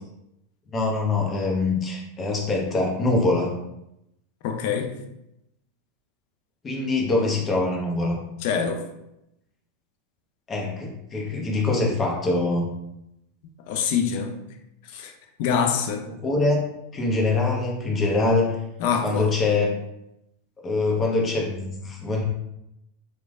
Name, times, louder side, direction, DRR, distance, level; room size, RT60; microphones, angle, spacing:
voice 1, 0.7-3.5 6.6-8.2 10.5-12.7 16.0-18.6 19.0-19.7 20.6-22.2, left 3 dB, 25° left, 0.8 m, -24 dB
voice 2, 4.4-4.9 8.4-8.8 13.7-14.4 14.9-15.1 15.4-16.0 18.8-19.3, left 7 dB, 60° left, 0.4 m, -25 dB
3.1 x 2.1 x 2.4 m
hypercardioid pair, 95°, 0 cm